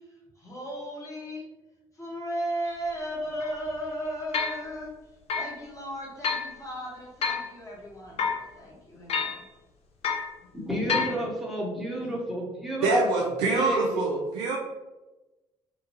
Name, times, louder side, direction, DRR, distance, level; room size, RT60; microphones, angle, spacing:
voice 1, 0.4-1.4 2.0-4.9 5.3-9.4, equal, 20° left, -4 dB, 1.2 m, -35 dB
sound 1, 2.7-2.8 3.4-3.5 4.3-4.6 5.3-5.5 6.2-6.5 7.2-7.5 8.2-8.4 9.1-9.4 10.0-10.3 10.9-11.2, left 5 dB, 45° left, 0.5 m, -28 dB
voice 2, 10.5-14.0, right 1 dB, ahead, -4 dB, 1.0 m, -31 dB
voice 3, 12.8-14.6, right 3 dB, 70° right, -2 dB, 0.4 m, -25 dB
2.8 x 2.2 x 2.8 m, 1.1 s
figure-of-eight pair, 45°, 14 cm